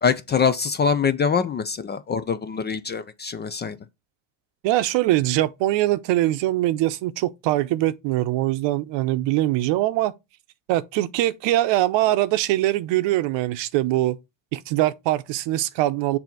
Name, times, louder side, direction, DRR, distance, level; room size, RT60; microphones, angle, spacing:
voice 1, 0.0-3.8, left 6 dB, 25° left, 0.4 m, -24 dB
voice 2, 4.6-10.1 10.7-14.2 14.5-16.2, right 15 dB, 65° right, 0.8 m, -22 dB
6.8 x 2.8 x 5.8 m
cardioid pair, 115°, 47 cm